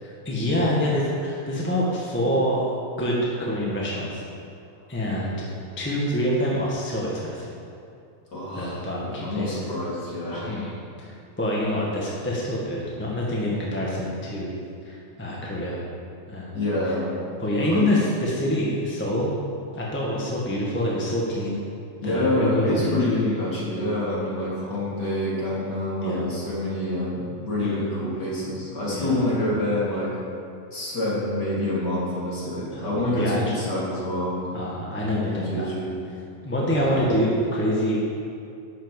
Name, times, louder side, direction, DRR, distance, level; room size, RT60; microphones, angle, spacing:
voice 1, 0.0-2.7 3.0-4.2 4.9-5.4 5.8-7.5 8.5-9.7 10.4-10.7 11.0-14.5 14.8-15.8 16.3-16.6 17.4-19.3 19.7-21.5 22.0-23.2 23.6-23.9 26.0-26.3 27.6-27.8 28.8-29.2 32.7-33.4 34.5-35.7 36.4-38.0, equal, 5° left, -5 dB, 1.0 m, -26 dB
voice 2, 8.3-10.5 16.5-17.1 17.7-17.8 22.0-30.1 30.7-34.4 35.1-36.0 36.7-37.1, left 1 dB, 35° left, -7 dB, 3.7 m, -27 dB
12.5 x 7.6 x 7.3 m, 2.5 s
omnidirectional pair, 3.5 m